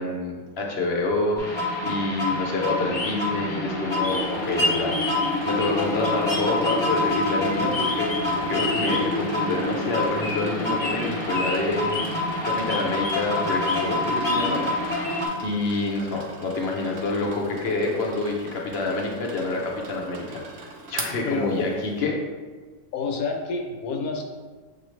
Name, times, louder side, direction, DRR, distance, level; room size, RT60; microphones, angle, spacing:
voice 1, 0.0-5.0 5.4-14.6 15.4-20.4 20.9-22.2, left 2 dB, 55° left, 0 dB, 0.8 m, -27 dB
sound 1, 1.4-15.3, left 2 dB, 20° left, 0.9 m, -26 dB
sound 2, 4.0-22.0, right 3 dB, 60° right, 0.7 m, -42 dB
voice 2, 21.2-21.6 22.9-24.2, left 4 dB, 75° left, 2 dB, 1.1 m, -28 dB
6.4 x 2.5 x 3.1 m, 1.4 s
omnidirectional pair, 1.6 m